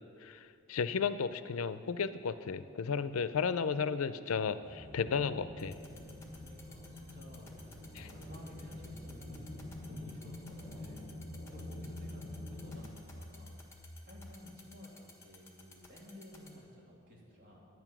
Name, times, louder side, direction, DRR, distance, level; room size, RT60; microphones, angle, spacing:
voice 1, 0.2-5.7 7.9-8.1, left 6 dB, 85° left, 13 dB, 0.5 m, -34 dB
sound 1, 4.6-12.8, left 1 dB, 20° right, 3.0 m, -47 dB
sound 2, 5.2-14.3, left 1 dB, 30° left, 2.2 m, -53 dB
sound 3, 5.6-16.5, left 3 dB, 15° left, 1.4 m, -55 dB
voice 2, 6.4-11.0 11.5-13.5 14.0-17.6, left 1 dB, 45° right, -4 dB, 2.9 m, -55 dB
11.0 x 9.3 x 6.0 m, 2.4 s
head